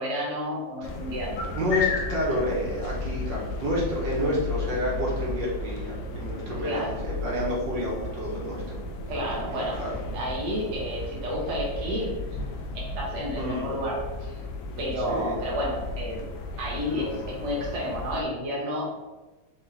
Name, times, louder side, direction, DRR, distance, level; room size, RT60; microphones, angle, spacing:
voice 1, 0.0-1.5 6.6-6.9 9.1-9.8 10.1-12.1 12.7-14.4 14.8-16.2 16.6-19.0, equal, 40° right, -3 dB, 1.3 m, -31 dB
sound 1, 0.8-18.2, left 2 dB, 90° left, 0.8 m, -34 dB
voice 2, 1.5-8.8 9.4-9.9 13.4-13.6 15.1-15.4, equal, 65° right, -4 dB, 1.8 m, -29 dB
4.1 x 2.9 x 3.9 m, 1.1 s
omnidirectional pair, 2.2 m